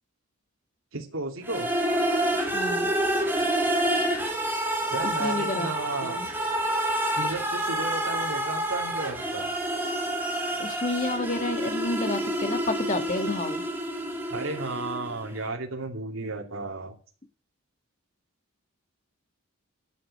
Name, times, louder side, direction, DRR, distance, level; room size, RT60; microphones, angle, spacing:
voice 1, 0.9-1.7 4.9-6.2 7.2-9.5 14.3-16.9, right 3 dB, 70° right, 2 dB, 2.5 m, -33 dB
sound 1, 1.4-15.3, right 1 dB, 10° right, 2.2 m, -28 dB
voice 2, 2.5-2.9 5.0-5.7 6.0-6.3 10.6-13.6, left 2 dB, 35° left, 6 dB, 1.7 m, -30 dB
12.0 x 6.7 x 8.6 m, 0.40 s
head